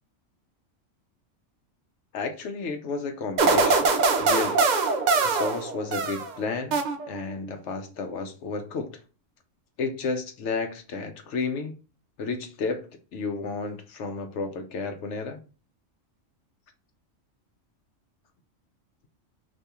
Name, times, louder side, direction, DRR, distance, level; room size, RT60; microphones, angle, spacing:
voice 1, 2.1-3.9 4.2-4.6 5.2-6.8 7.1-9.0 9.8-11.7 12.2-15.4, left 4 dB, 70° left, 0.8 m, -32 dB
sound 1, 3.4-6.3 6.7-7.4, right 4 dB, 75° right, 0.4 m, -23 dB
3.4 x 2.6 x 2.8 m
omnidirectional pair, 1.3 m